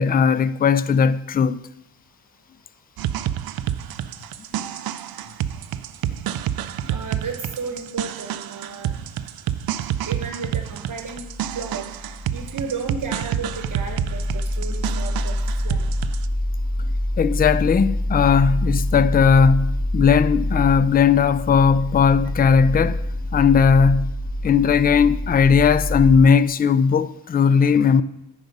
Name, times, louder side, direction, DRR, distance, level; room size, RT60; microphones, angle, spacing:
voice 1, 0.0-1.6 17.2-23.0 23.3-24.1 24.4-28.0, left 6 dB, 25° left, 0.3 m, -17 dB
sound 1, 3.0-16.3, right 11 dB, 65° right, 0.5 m, -29 dB
voice 2, 6.9-9.0 10.0-11.3 11.5-11.9 12.3-15.4 15.6-15.8, right 4 dB, 50° right, 1.0 m, -33 dB
sound 2, 11.0-26.2, left 1 dB, 80° left, 2.2 m, -26 dB
9.3 x 4.8 x 5.4 m
cardioid pair, 65°, 40 cm